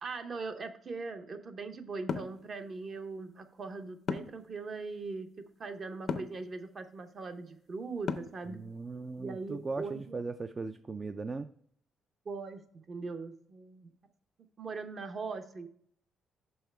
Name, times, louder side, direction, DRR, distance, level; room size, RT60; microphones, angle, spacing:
voice 1, 0.0-5.3 5.6-8.6 9.2-10.2 12.2-13.9 14.6-15.7, right 4 dB, 45° right, 7 dB, 0.8 m, -40 dB
sound 1, 2.1-2.4 4.1-4.5 6.1-6.4 8.1-8.5, left 6 dB, 60° left, 0.5 m, -34 dB
voice 2, 8.5-11.5, right 3 dB, 30° right, 10 dB, 0.3 m, -38 dB
6.5 x 5.5 x 3.3 m, 0.65 s
cardioid pair, 90°, 0 cm